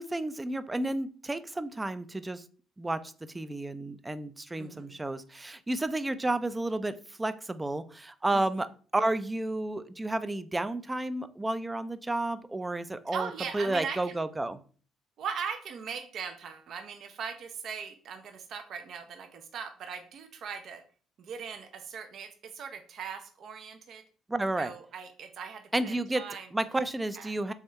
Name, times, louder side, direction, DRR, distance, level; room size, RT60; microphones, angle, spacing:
voice 1, 0.0-2.4 2.8-8.7 8.9-14.6 24.3-24.7 25.7-26.2 26.5-27.5, right 2 dB, 15° right, 13 dB, 0.4 m, -31 dB
voice 2, 4.6-5.0 8.3-8.6 13.1-14.1 15.2-20.8 21.2-24.0 24.6-26.5 27.2-27.3, right 6 dB, 60° right, 6 dB, 0.6 m, -39 dB
3.6 x 3.4 x 4.1 m, 0.41 s
cardioid pair, 115°, 0 cm